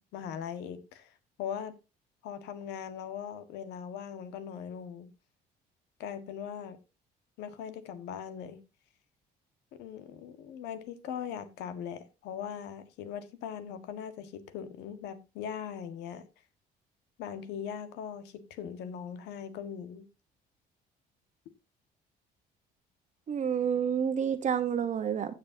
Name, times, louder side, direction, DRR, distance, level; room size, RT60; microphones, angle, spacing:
voice 1, 0.1-1.1 1.4-1.7 2.2-5.1 6.0-6.8 7.4-8.6 9.8-16.3 17.2-20.1, left 8 dB, 90° left, 1.6 m, -40 dB
voice 2, 23.3-25.3, right 8 dB, 45° right, 1.1 m, -29 dB
15.5 x 6.6 x 2.8 m
cardioid pair, 110°, 17 cm